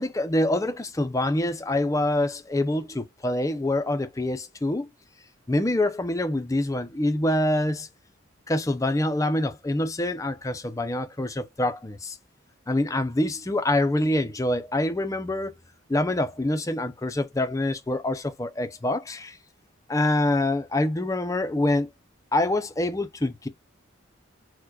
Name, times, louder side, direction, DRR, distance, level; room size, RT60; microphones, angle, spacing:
voice 1, 0.0-4.9 5.5-7.9 8.5-12.2 12.7-15.5 15.9-19.4 19.9-21.9 22.3-23.5, left 1 dB, 15° left, 0.4 m, -25 dB
4.5 x 2.2 x 4.4 m
head